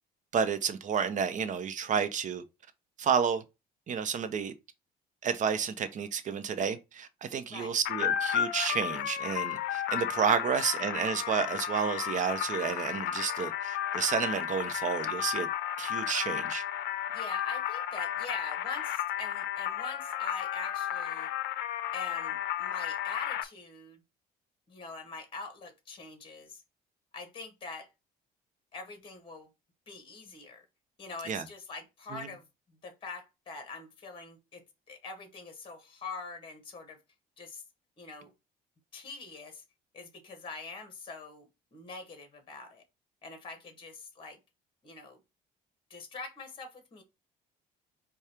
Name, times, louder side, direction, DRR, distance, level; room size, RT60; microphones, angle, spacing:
voice 1, 0.3-2.4 3.0-3.4 3.9-4.5 5.2-15.5 15.8-16.6 31.3-31.4 32.1-32.3, right 7 dB, 45° right, 0.7 m, -31 dB
sound 1, 7.9-23.4, left 10 dB, 75° left, 0.5 m, -33 dB
voice 2, 17.1-21.3 21.9-24.0 24.7-26.6 27.1-27.9 28.7-29.5 29.9-30.6 31.0-37.0 37.4-37.6 38.0-38.3 38.9-39.6 39.9-42.8 43.2-44.4 44.8-45.2 45.9-47.0, left 4 dB, 30° left, 1.2 m, -44 dB
4.8 x 2.3 x 4.4 m
cardioid pair, 110°, 17 cm